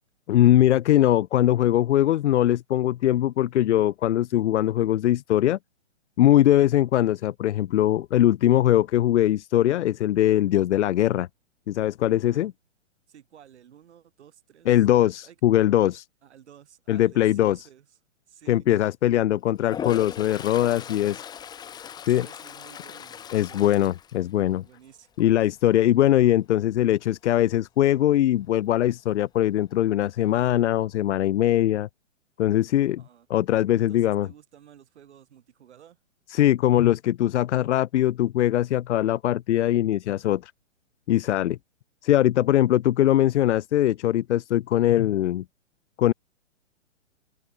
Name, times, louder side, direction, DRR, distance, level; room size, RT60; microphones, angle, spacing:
voice 1, 0.3-5.6 6.2-11.3 11.7-12.5 14.7-16.1 16.9-17.6 18.5-21.2 22.1-22.3 23.3-24.6 25.2-31.9 32.4-33.0 33.3-34.3 36.3-40.5 41.1-41.6 42.0-45.4 46.0-46.1, left 12 dB, 65° left, 0.5 m, -21 dB
voice 2, 13.1-15.4 16.2-18.0 18.3-18.7 22.0-23.8 24.6-25.1 33.0-33.3 33.7-36.0, right 9 dB, 60° right, 7.8 m, -53 dB
Toilet flush, 19.6-24.8 25.2-25.6 30.0-30.1 30.4-31.1, left 8 dB, 10° left, 1.0 m, -39 dB
open air
hypercardioid pair, 135°, 37 cm